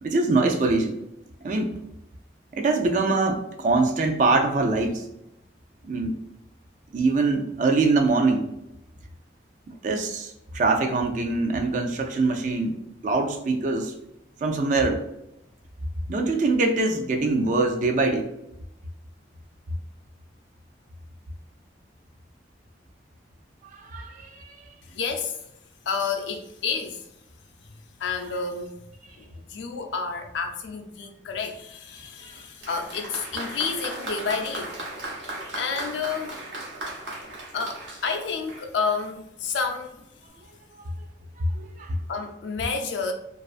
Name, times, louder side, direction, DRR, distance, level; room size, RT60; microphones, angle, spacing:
voice 1, 0.0-1.0 1.4-1.8 2.5-5.1 5.8-6.1 6.9-8.5 9.7-12.8 13.0-13.9 14.4-15.0 16.1-18.3 23.6-24.6 41.4-42.0, right 3 dB, 40° right, 0.3 m, -23 dB
voice 2, 24.9-25.4 25.9-27.0 28.0-28.8 29.2-34.8 35.6-36.3 37.5-40.0 42.1-43.1, left 5 dB, 80° left, 0.4 m, -30 dB
Applause, 32.6-39.1 40.0-40.1, right 2 dB, 75° right, 0.7 m, -37 dB
2.4 x 2.3 x 2.4 m
head